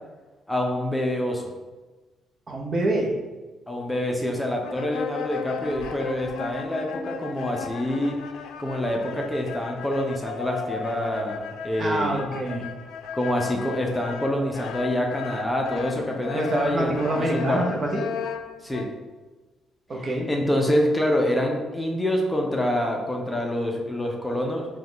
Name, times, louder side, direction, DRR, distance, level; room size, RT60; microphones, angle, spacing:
voice 1, 0.5-1.4 3.7-8.2 8.6-12.3 13.1-17.6 18.6-18.9 20.0-24.7, left 1 dB, 15° left, 1 dB, 0.6 m, -26 dB
voice 2, 2.5-3.1 11.8-12.6 16.3-18.1 19.9-20.3, right 1 dB, 45° right, 0 dB, 0.8 m, -26 dB
sound 1, 4.6-18.8, left 7 dB, 90° left, 0.4 m, -36 dB
4.9 x 2.3 x 3.9 m, 1.2 s
cardioid pair, 90°, 0 cm